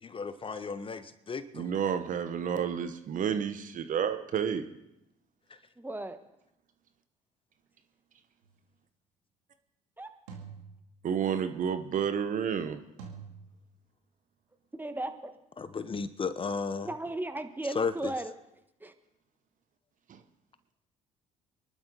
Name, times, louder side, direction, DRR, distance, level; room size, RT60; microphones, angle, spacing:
voice 1, 0.0-1.7 5.5-5.6 15.6-16.9 17.7-18.1, left 5 dB, 30° left, 12 dB, 1.0 m, -34 dB
voice 2, 1.5-4.6 11.0-12.8, right 8 dB, 50° right, 9 dB, 1.2 m, -30 dB
voice 3, 5.8-6.2 10.0-10.1 14.7-15.4 16.8-18.3 18.8-18.9, right 2 dB, 10° right, 8 dB, 1.6 m, -36 dB
sound 1, 8.4-8.7 10.3-11.4 13.0-14.2, right 6 dB, 85° right, 2.4 m, -48 dB
25.0 x 11.5 x 3.9 m, 0.85 s
hypercardioid pair, 55°, 17 cm